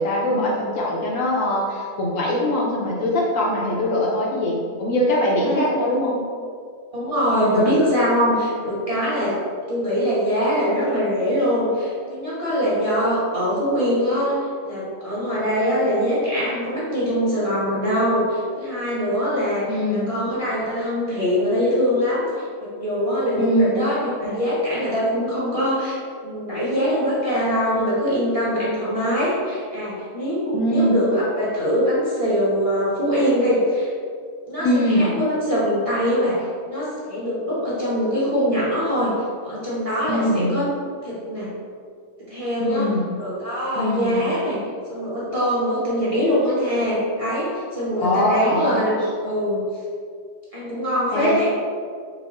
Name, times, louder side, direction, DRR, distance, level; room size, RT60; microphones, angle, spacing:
voice 1, 0.0-6.1 7.4-7.7 19.7-20.1 23.4-23.8 30.5-31.0 34.6-35.1 40.1-40.5 42.6-43.0 43.8-44.3 48.0-48.9 51.1-51.4, left 1 dB, 65° left, -4 dB, 0.9 m, -22 dB
voice 2, 5.4-5.7 6.9-9.3 9.7-14.3 14.6-33.9 34.5-36.4 36.6-39.1 39.4-40.7 41.0-41.5 42.2-42.9 43.2-44.6 44.9-49.6 50.5-51.5, equal, 25° right, -9 dB, 0.9 m, -23 dB
4.2 x 2.0 x 4.0 m, 2.2 s
omnidirectional pair, 1.6 m